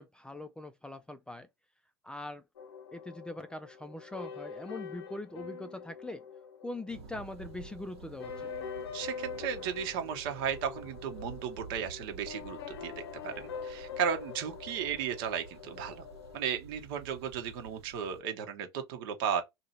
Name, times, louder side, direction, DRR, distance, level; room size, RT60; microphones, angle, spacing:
voice 1, 0.0-1.5 2.0-2.4 2.9-6.2 6.6-8.5, left 2 dB, 5° left, 0.3 m, -42 dB
sound 1, 2.6-16.4, left 6 dB, 85° left, 0.7 m, -44 dB
Thunder, 6.9-18.2, right 5 dB, 85° right, 1.5 m, -51 dB
voice 2, 8.9-13.3 13.6-16.0 16.3-19.4, right 8 dB, 60° right, 1.1 m, -35 dB
2.8 x 2.7 x 4.0 m
hypercardioid pair, 100°, 13 cm